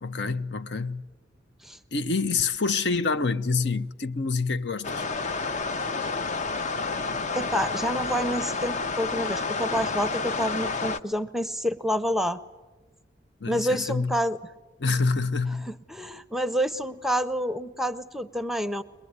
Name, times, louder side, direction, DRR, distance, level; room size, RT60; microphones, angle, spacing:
voice 1, 0.0-1.0 1.9-5.0 13.4-14.1 14.8-15.7, left 4 dB, 65° left, 0.8 m, -27 dB
sound 1, 4.8-11.0, left 4 dB, 40° left, 0.8 m, -29 dB
voice 2, 7.3-12.4 13.5-14.4 15.6-18.8, equal, ahead, 0.7 m, -28 dB
22.0 x 22.0 x 9.5 m
head